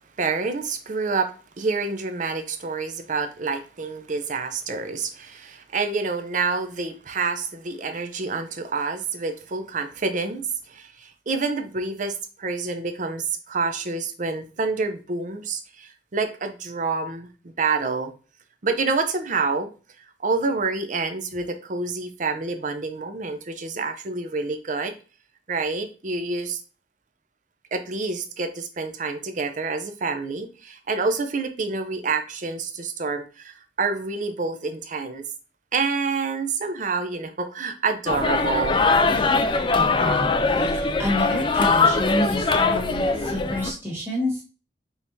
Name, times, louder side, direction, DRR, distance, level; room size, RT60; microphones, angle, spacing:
voice 1, 0.2-18.1 18.6-19.7 20.0-24.9 25.5-26.6 27.7-35.3 35.7-38.8, right 4 dB, 45° right, 7 dB, 0.6 m, -28 dB
sound 1, 38.1-43.7, left 3 dB, 25° left, 0.3 m, -21 dB
voice 2, 39.7-44.4, left 1 dB, 15° right, -6 dB, 1.5 m, -29 dB
4.7 x 3.5 x 2.6 m, 0.35 s
head